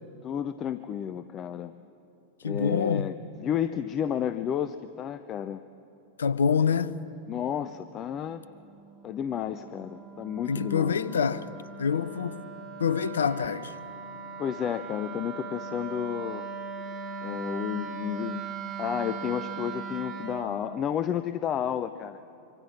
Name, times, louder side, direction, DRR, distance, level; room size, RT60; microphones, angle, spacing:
voice 1, 0.2-1.7 2.4-5.6 7.3-8.4 9.0-11.0 14.4-16.5 17.2-18.4 18.8-22.2, left 9 dB, 30° left, 0.7 m, -31 dB
voice 2, 2.4-3.1 6.2-6.9 10.5-11.5 11.8-12.4 12.8-13.7, left 6 dB, 70° left, 0.8 m, -26 dB
Wind instrument woodwind instrument, 7.6-20.5, right 5 dB, 30° right, 2.4 m, -40 dB
25.5 x 24.5 x 6.0 m
figure-of-eight pair, 90°, 0 cm